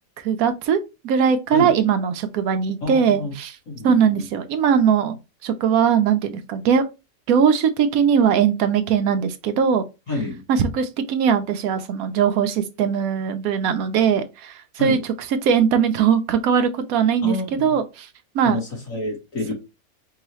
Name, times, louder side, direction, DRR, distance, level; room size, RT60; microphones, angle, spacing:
voice 1, 0.2-3.5 3.8-5.2 5.4-6.9 7.3-9.8 10.5-15.0 15.4-18.1 18.3-18.6, right 7 dB, 75° right, 1.0 m, -20 dB
voice 2, 2.8-3.3 3.7-4.3 10.1-10.4 14.8-15.0 17.2-17.7 18.4-19.5, left 2 dB, 65° left, 2.5 m, -28 dB
4.6 x 2.8 x 3.0 m
omnidirectional pair, 1.5 m